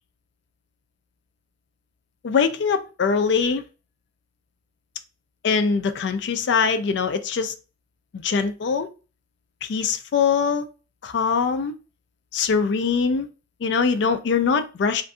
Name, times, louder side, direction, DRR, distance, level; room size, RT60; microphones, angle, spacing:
voice 1, 2.2-3.6 5.4-7.5 8.1-8.9 9.7-10.6 11.0-11.7 12.3-13.3 13.6-15.0, left 5 dB, 70° left, 0.3 m, -22 dB
2.6 x 2.5 x 2.2 m
head